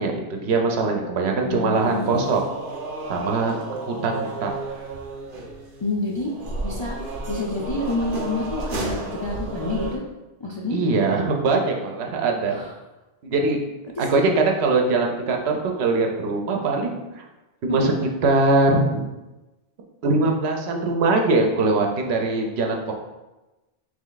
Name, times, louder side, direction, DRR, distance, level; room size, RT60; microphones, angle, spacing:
voice 1, 0.0-2.4 3.1-4.5 10.7-12.6 13.2-13.6 14.0-17.2 17.6-17.9 18.2-19.0 20.0-22.9, right 3 dB, 85° right, 2 dB, 0.9 m, -22 dB
voice 2, 1.4-2.2 5.8-6.3 6.6-7.0 7.3-10.0 10.4-10.8 12.5-12.7 13.9-14.3 17.7-17.9, left 2 dB, 50° left, -3 dB, 0.3 m, -28 dB
sound 1, 1.7-10.0, right 2 dB, 60° right, 0.8 m, -32 dB
3.4 x 3.2 x 3.9 m, 1.1 s
omnidirectional pair, 1.0 m